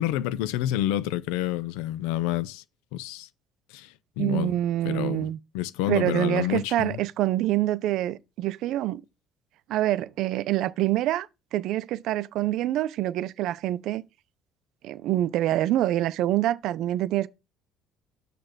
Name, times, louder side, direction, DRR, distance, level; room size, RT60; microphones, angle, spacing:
voice 1, 0.0-2.6 2.9-3.3 3.7-4.5 4.8-5.3 5.5-7.0, left 13 dB, 90° left, 0.5 m, -28 dB
voice 2, 4.2-5.4 5.9-9.0 9.7-14.1 14.8-17.3, right 14 dB, 70° right, 0.5 m, -26 dB
6.6 x 3.3 x 6.0 m
cardioid pair, 100°, 0 cm